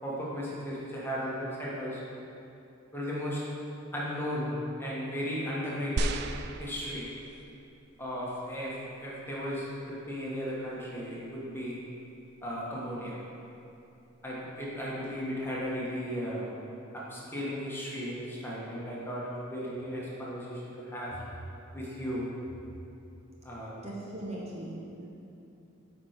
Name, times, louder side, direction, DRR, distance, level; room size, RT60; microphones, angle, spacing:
voice 1, 0.0-2.0 2.9-3.4 3.9-6.2 6.6-7.1 8.0-11.8 12.4-13.2 14.2-16.5 16.9-21.2 21.7-22.3 23.4-23.9, equal, 10° left, -6 dB, 1.3 m, -35 dB
sound 1, 6.0-7.5 8.2-8.3, right 2 dB, 55° right, 0.3 m, -33 dB
voice 2, 23.8-25.1, right 1 dB, 30° right, -4 dB, 0.9 m, -39 dB
8.6 x 4.5 x 5.0 m, 2.8 s
head